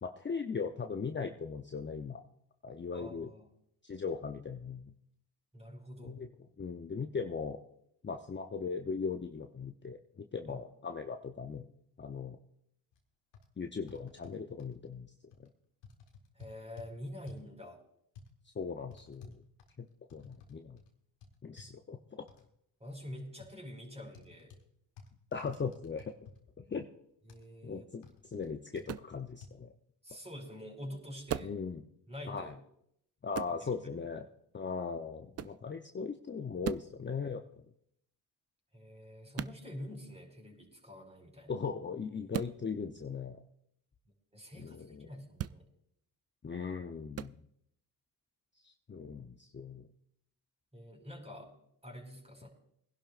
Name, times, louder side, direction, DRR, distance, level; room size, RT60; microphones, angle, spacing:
voice 1, 0.0-2.2 2.6-3.3 3.8-4.9 6.0-6.3 6.6-7.6 8.0-11.7 12.0-12.4 13.6-15.1 15.4-15.5 18.5-19.4 19.8-20.8 21.4-22.3 25.3-26.3 26.6-26.9 27.6-29.7 31.4-31.8 32.3-32.5 33.2-34.3 34.5-37.4 41.5-43.4 44.5-45.1 46.4-47.4 48.6-49.9, left 5 dB, 25° left, 4 dB, 0.8 m, -39 dB
voice 2, 2.9-3.5 5.5-6.2 10.5-10.6 16.3-17.8 22.8-24.5 27.3-27.9 30.0-31.5 32.1-32.5 33.5-33.8 38.7-41.5 44.3-45.6 50.7-51.5 51.8-52.5, left 1 dB, 15° right, 0 dB, 4.9 m, -46 dB
sound 1, 12.9-13.0 13.3-13.5 13.9-14.7 15.3-15.5 15.8-16.9 17.3-17.5 18.2-18.3 18.9-20.5 20.8-20.9 21.2-21.7 22.3-22.4 23.4-23.6 24.1-24.6 25.0-26.4 26.7-26.8 27.3-27.5 28.0-28.5 28.8-28.9 29.4-29.5, left 5 dB, 85° left, 1.8 m, -53 dB
sound 2, 28.9-29.1 31.3-31.6 33.3-33.6 35.3-35.6 36.6-36.9 39.3-39.6 42.3-42.6 45.3-45.6 47.1-47.3, right 10 dB, 35° right, 0.4 m, -37 dB
22.0 x 11.5 x 2.5 m, 0.72 s
supercardioid pair, 60°, 42 cm